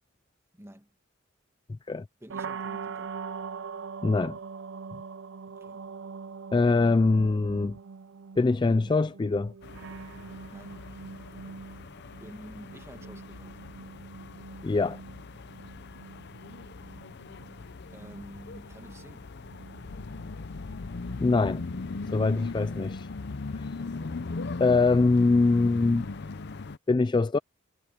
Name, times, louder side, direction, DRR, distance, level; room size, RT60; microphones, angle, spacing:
voice 1, 0.5-0.9 2.2-3.2 5.5-5.9 10.5-10.8 12.2-13.6 17.9-19.3 23.8-24.2, equal, 15° right, 1.9 m, -49 dB
sound 1, 2.3-22.1, right 5 dB, 60° right, 0.5 m, -43 dB
voice 2, 4.0-4.4 6.5-7.8 8.4-9.5 14.6-15.0 21.2-21.6 22.1-23.1 23.5-23.6 24.6-26.1 26.9-27.4, left 3 dB, 20° left, 0.3 m, -23 dB
sound 2, 9.6-26.8, left 3 dB, 55° left, 0.7 m, -39 dB
head